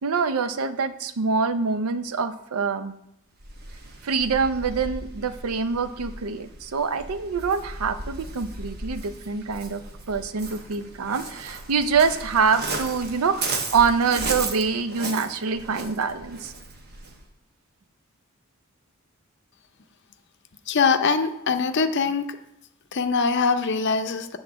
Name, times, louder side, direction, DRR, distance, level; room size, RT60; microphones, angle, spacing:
voice 1, 0.0-3.0 4.0-9.8 10.1-16.5, right 5 dB, 85° right, 11 dB, 0.6 m, -25 dB
Waves surf, 3.4-17.3, right 3 dB, 45° right, 0.9 m, -35 dB
voice 2, 20.7-22.3 22.9-24.4, left 5 dB, 50° left, 8 dB, 0.6 m, -22 dB
8.0 x 3.8 x 6.8 m, 0.81 s
head